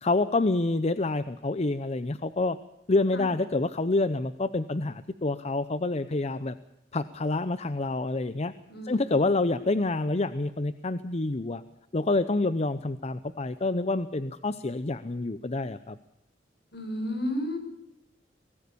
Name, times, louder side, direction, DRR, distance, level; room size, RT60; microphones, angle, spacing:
voice 1, 0.0-2.6 2.9-6.5 6.9-8.5 8.8-11.6 11.9-16.0, left 2 dB, 35° left, 14 dB, 0.7 m, -27 dB
voice 2, 8.7-9.0 16.7-17.6, left 1 dB, 60° left, 5 dB, 6.6 m, -32 dB
24.5 x 18.5 x 6.9 m, 0.82 s
head